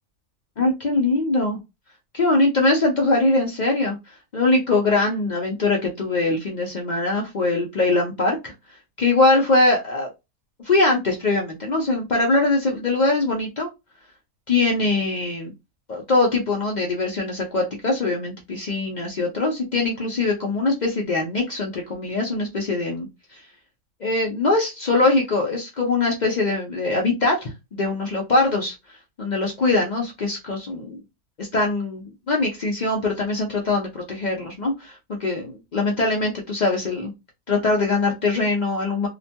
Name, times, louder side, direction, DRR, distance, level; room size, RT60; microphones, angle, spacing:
voice 1, 0.6-1.6 2.1-4.0 4.3-8.5 9.0-10.1 10.6-13.7 14.5-15.5 15.9-23.1 23.3-23.4 24.0-28.7 29.2-31.0 31.4-37.1 37.5-39.1, left 2 dB, 65° left, 0 dB, 0.4 m, -22 dB
2.9 x 2.2 x 2.7 m, 0.23 s
omnidirectional pair, 1.6 m